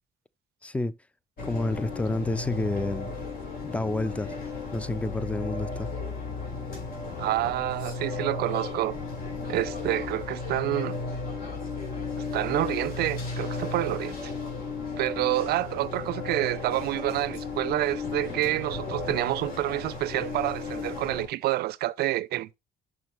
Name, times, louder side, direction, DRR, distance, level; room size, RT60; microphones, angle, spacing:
voice 1, 0.6-0.9 1.4-3.1 3.6-4.4 4.7-5.9, left 2 dB, 10° left, 0.4 m, -29 dB
sound 1, 1.4-21.3, left 4 dB, 60° left, 4.0 m, -34 dB
voice 2, 7.2-9.0 9.5-11.0 12.2-14.3 15.0-22.6, right 16 dB, 70° right, 0.4 m, -28 dB
6.2 x 6.1 x 3.0 m
cardioid pair, 110°, 17 cm